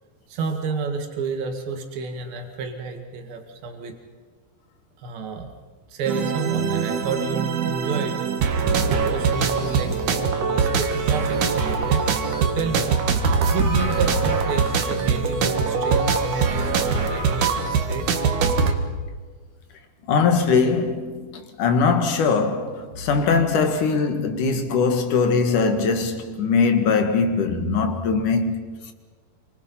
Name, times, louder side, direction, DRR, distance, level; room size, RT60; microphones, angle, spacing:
voice 1, 0.3-4.0 5.0-5.5 5.9-8.2 8.9-12.0 12.4-13.0 13.5-18.1, right 4 dB, 75° right, 3.9 m, -30 dB
sound 1, 6.1-18.7, right 5 dB, 60° right, 2.9 m, -22 dB
voice 2, 20.1-28.9, left 5 dB, 60° left, 3.0 m, -21 dB
28.0 x 25.5 x 5.7 m
omnidirectional pair, 4.3 m